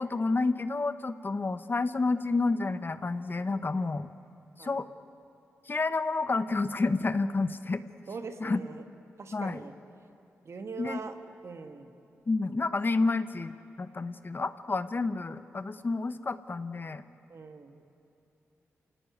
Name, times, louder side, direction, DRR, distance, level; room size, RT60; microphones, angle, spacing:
voice 1, 0.0-4.1 4.6-4.9 5.7-7.8 8.4-8.6 9.3-9.6 10.8-11.0 12.3-17.0, left 3 dB, 40° left, 12 dB, 1.0 m, -29 dB
voice 2, 8.1-8.8 9.2-9.7 10.4-11.2 11.4-11.9 17.3-17.8, right 4 dB, 60° right, 7 dB, 2.0 m, -41 dB
28.0 x 17.5 x 9.4 m, 2.9 s
cardioid pair, 60°, 5 cm